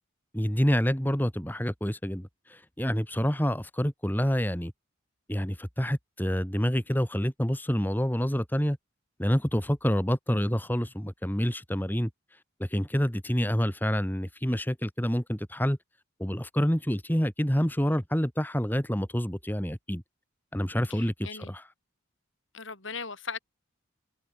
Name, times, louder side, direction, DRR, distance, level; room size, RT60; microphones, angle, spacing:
voice 1, 0.3-4.7 5.3-8.8 9.2-12.1 12.6-15.8 16.2-20.0 20.5-21.7, equal, 10° left, 2.5 m, -27 dB
voice 2, 22.5-23.4, left 5 dB, 70° left, 4.5 m, -37 dB
head